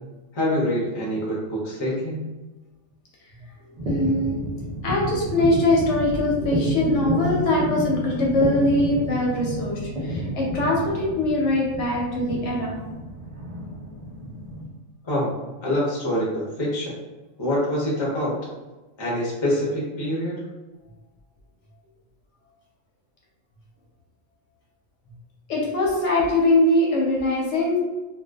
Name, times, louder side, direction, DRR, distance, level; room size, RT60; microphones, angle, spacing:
voice 1, 0.3-2.2 15.0-15.3 15.6-16.9 17.4-18.4 19.0-20.4, equal, 35° left, -5 dB, 0.5 m, -25 dB
voice 2, 3.4-4.4 4.8-12.8 25.5-27.8, left 1 dB, 65° left, -3 dB, 0.8 m, -22 dB
sound 1, 3.8-14.6, equal, 50° right, 0.4 m, -30 dB
2.5 x 2.2 x 2.2 m, 1.2 s
omnidirectional pair, 1.4 m